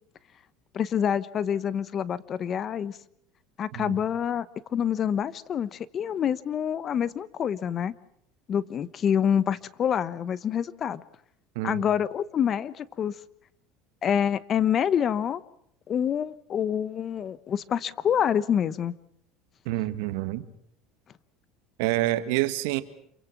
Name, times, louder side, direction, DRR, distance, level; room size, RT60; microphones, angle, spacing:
voice 1, 0.7-3.0 3.6-4.5 4.7-7.9 8.5-11.0 11.6-13.1 14.0-15.4 15.9-18.9, left 8 dB, 40° left, 18 dB, 1.0 m, -27 dB
voice 2, 19.6-20.4 21.8-22.8, right 16 dB, 75° right, 12 dB, 1.7 m, -27 dB
27.5 x 23.5 x 6.0 m, 0.70 s
supercardioid pair, 110°, 0 cm